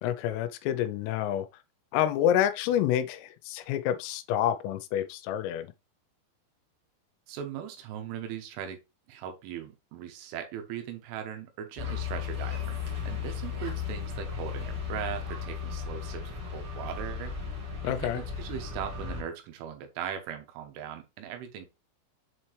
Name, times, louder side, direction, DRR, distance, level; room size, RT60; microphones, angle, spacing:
voice 1, 0.0-1.5 1.9-5.7 17.8-18.2, left 11 dB, 85° left, 3.1 m, -28 dB
voice 2, 7.3-8.8 9.1-12.8 13.1-17.3 17.8-21.7, right 9 dB, 80° right, 3.4 m, -39 dB
sound 1, 11.8-19.2, left 6 dB, 50° right, 1.7 m, -35 dB
7.4 x 4.3 x 3.1 m
omnidirectional pair, 5.9 m